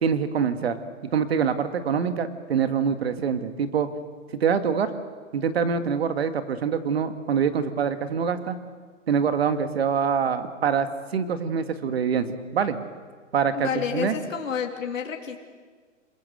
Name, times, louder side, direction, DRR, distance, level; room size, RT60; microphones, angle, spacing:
voice 1, 0.0-0.8 1.1-3.9 4.3-4.9 5.3-8.6 9.1-12.8 13.3-14.2, right 7 dB, 55° right, 9 dB, 2.0 m, -25 dB
voice 2, 13.5-15.4, left 7 dB, 85° left, 2 dB, 3.3 m, -29 dB
27.5 x 21.0 x 7.9 m, 1.5 s
hypercardioid pair, 175°, 38 cm